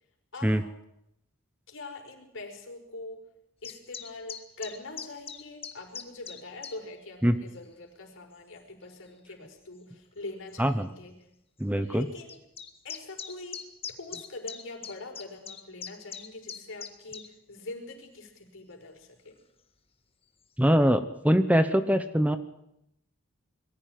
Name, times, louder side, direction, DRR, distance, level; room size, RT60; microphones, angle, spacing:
voice 1, 0.3-0.7 1.7-3.2 3.6-11.2 11.8-12.4 12.8-13.6 14.0-19.4, left 2 dB, 65° left, 3 dB, 5.1 m, -43 dB
sound 1, 3.6-6.8 7.5-7.6 8.5-8.6 9.8-9.9 10.2-10.3 10.5-10.6 12.3-17.3, left 6 dB, 30° left, 1.7 m, -40 dB
voice 2, 11.6-12.1 20.6-22.4, equal, 5° right, 10 dB, 0.9 m, -23 dB
22.0 x 15.0 x 9.4 m, 0.80 s
head